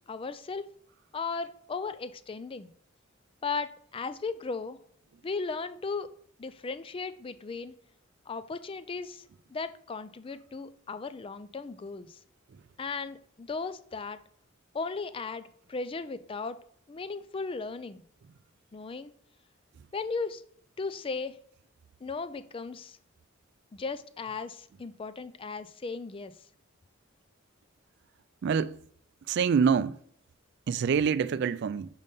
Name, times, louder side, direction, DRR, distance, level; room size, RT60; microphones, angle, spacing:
voice 1, 0.1-0.6 1.1-2.7 3.4-4.8 5.2-6.1 6.4-7.7 8.3-9.2 9.5-12.2 12.8-14.2 14.7-16.6 16.9-18.0 18.7-19.1 19.9-20.4 20.8-21.3 22.0-23.0 23.7-26.3, left 4 dB, 25° left, 0.4 m, -36 dB
voice 2, 29.3-29.9 30.7-31.9, right 6 dB, 55° right, 0.3 m, -25 dB
5.3 x 5.3 x 5.5 m
head